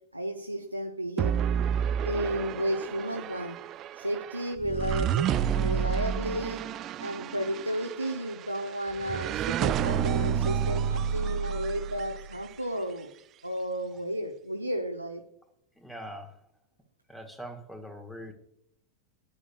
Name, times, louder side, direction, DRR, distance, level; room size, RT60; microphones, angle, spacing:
voice 1, 0.1-1.4 2.0-3.6 4.0-6.6 7.0-13.1 13.4-15.2, right 1 dB, 90° right, 3 dB, 0.7 m, -33 dB
sound 1, 1.2-12.5, right 8 dB, 35° right, 0.4 m, -30 dB
voice 2, 15.8-16.4 17.1-18.3, equal, 5° left, 5 dB, 1.4 m, -42 dB
11.5 x 9.8 x 2.3 m, 0.78 s
figure-of-eight pair, 90°, 0 cm